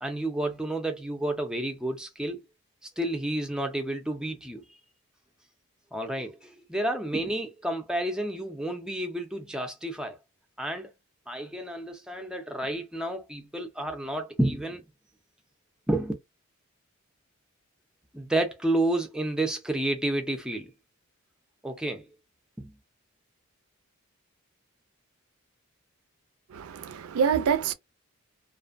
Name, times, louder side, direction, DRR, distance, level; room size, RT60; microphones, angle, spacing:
voice 1, 0.0-2.4 3.0-4.6 5.9-10.2 10.6-10.9 11.3-14.8 15.9-16.1 18.1-20.7 21.6-22.1 22.6-22.7, right 1 dB, 5° right, 0.4 m, -30 dB
voice 2, 26.5-27.7, right 7 dB, 80° right, 0.4 m, -26 dB
2.5 x 2.1 x 2.4 m
head